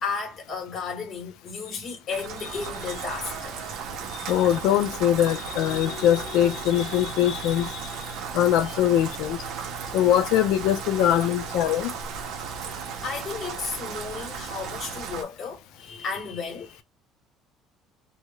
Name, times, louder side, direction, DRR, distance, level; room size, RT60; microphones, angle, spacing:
voice 1, 0.0-3.7 8.6-8.7 9.1-9.2 9.5-9.7 13.0-16.8, left 5 dB, 35° left, 1.0 m, -34 dB
Rain, 2.1-15.2, right 6 dB, 60° right, 0.6 m, -35 dB
voice 2, 4.3-7.8 8.3-9.4 9.9-11.9, left 11 dB, 75° left, 0.4 m, -22 dB
2.2 x 2.0 x 3.7 m
cardioid pair, 150°, 0 cm